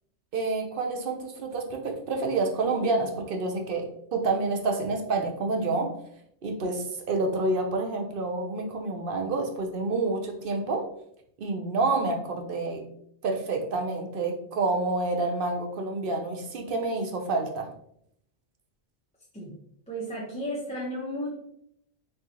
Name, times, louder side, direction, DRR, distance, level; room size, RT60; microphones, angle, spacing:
voice 1, 0.3-5.9 6.4-10.8 11.4-12.8 13.2-17.7, right 3 dB, 55° right, 2 dB, 0.8 m, -28 dB
voice 2, 19.9-21.3, equal, 5° left, -6 dB, 0.7 m, -33 dB
4.4 x 3.2 x 2.8 m, 0.70 s
omnidirectional pair, 1.2 m